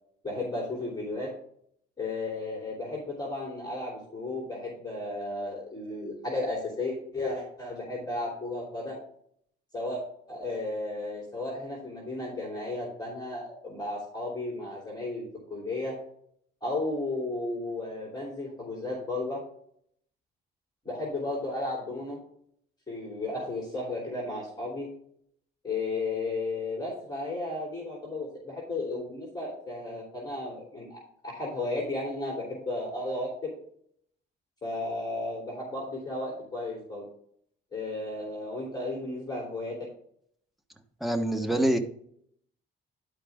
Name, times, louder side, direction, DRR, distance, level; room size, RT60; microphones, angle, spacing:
voice 1, 0.2-1.3 2.0-8.9 9.7-10.0 10.3-15.9 16.6-19.4 20.8-22.2 22.9-24.9 25.6-33.5 34.6-37.0 37.7-39.7, left 2 dB, 20° left, -3 dB, 3.0 m, -34 dB
voice 2, 41.0-41.8, right 1 dB, ahead, 5 dB, 1.2 m, -25 dB
11.5 x 5.0 x 3.5 m, 0.67 s
cardioid pair, 90°, 20 cm